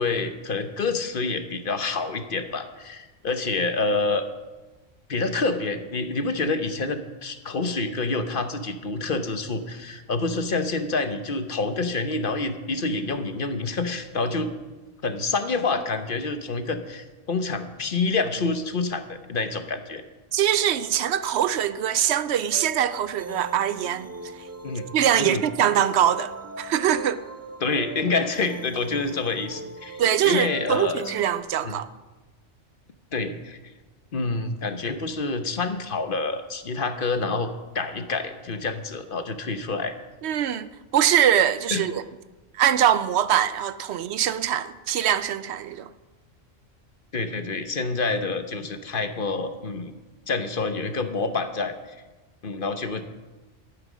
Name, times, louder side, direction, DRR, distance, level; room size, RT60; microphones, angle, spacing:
voice 1, 0.0-4.2 5.1-14.5 15.0-20.0 24.6-24.9 25.2-25.4 27.6-31.0 31.6-31.8 33.1-33.6 34.1-40.0 41.7-41.8 47.1-49.9 50.3-52.0 52.4-53.0, left 3 dB, 50° left, 1.0 m, -27 dB
voice 2, 20.3-24.1 24.9-27.2 30.0-31.9 40.2-42.0 42.5-45.9, right 10 dB, 65° right, 0.8 m, -23 dB
sound 1, 20.5-31.4, right 2 dB, 20° right, 0.4 m, -40 dB
13.0 x 9.0 x 6.2 m
omnidirectional pair, 1.2 m